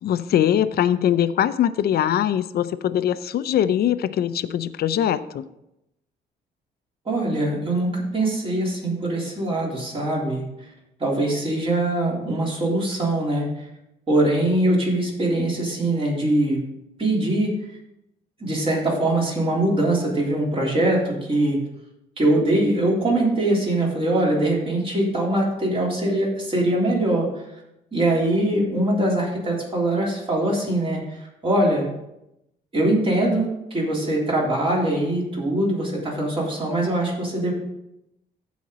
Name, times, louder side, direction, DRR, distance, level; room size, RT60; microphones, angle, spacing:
voice 1, 0.0-5.4, left 10 dB, 60° left, 13 dB, 0.5 m, -22 dB
voice 2, 7.1-10.4 11.0-13.6 14.1-16.6 17.0-17.5 18.4-21.6 22.2-27.3 27.9-31.9 32.7-37.5, right 1 dB, 30° right, -4 dB, 3.6 m, -22 dB
14.5 x 5.2 x 4.0 m, 0.87 s
cardioid pair, 110°, 18 cm